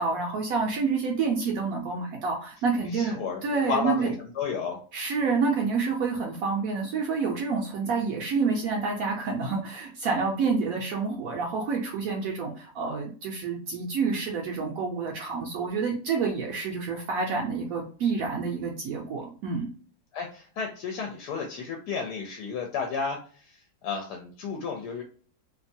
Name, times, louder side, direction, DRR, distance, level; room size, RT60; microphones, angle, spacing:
voice 1, 0.0-4.1 4.9-19.7, right 4 dB, 70° right, 0 dB, 0.9 m, -28 dB
voice 2, 2.8-4.8 20.1-25.0, left 5 dB, 80° left, 1 dB, 1.1 m, -32 dB
2.8 x 2.2 x 2.6 m, 0.42 s
omnidirectional pair, 1.7 m